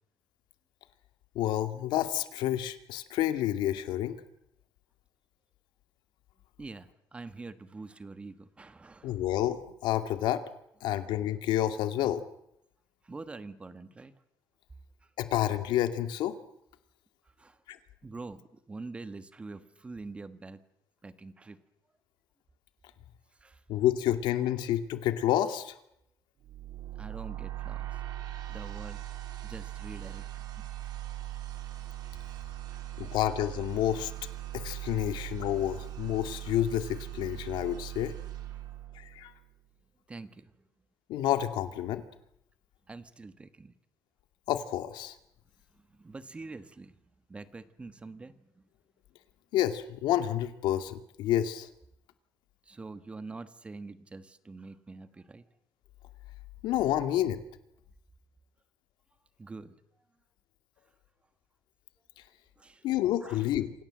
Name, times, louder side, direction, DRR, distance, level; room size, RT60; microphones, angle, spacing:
voice 1, 1.3-4.2 9.0-10.4 10.8-12.2 15.2-16.4 17.7-17.8 23.7-25.7 33.0-34.1 34.5-38.1 39.0-39.3 41.1-42.0 44.5-45.1 49.5-51.7 56.6-57.4 62.8-63.7, left 12 dB, 85° left, 9 dB, 2.4 m, -29 dB
voice 2, 6.6-9.2 13.0-14.1 17.4-17.6 18.0-18.4 18.7-20.6 21.0-21.6 23.4-23.8 27.0-28.0 28.5-29.0 29.4-30.2 30.6-30.7 32.7-32.8 35.1-35.2 38.5-38.6 40.1-40.5 42.9-43.7 45.9-46.9 47.3-48.6 52.6-55.4 59.4-59.7 62.6-62.9 63.2-63.4, right 3 dB, 15° right, 12 dB, 1.4 m, -45 dB
sound 1, 26.4-39.5, right 13 dB, 65° right, 4.2 m, -40 dB
27.5 x 27.0 x 7.7 m, 0.80 s
cardioid pair, 170°, 8 cm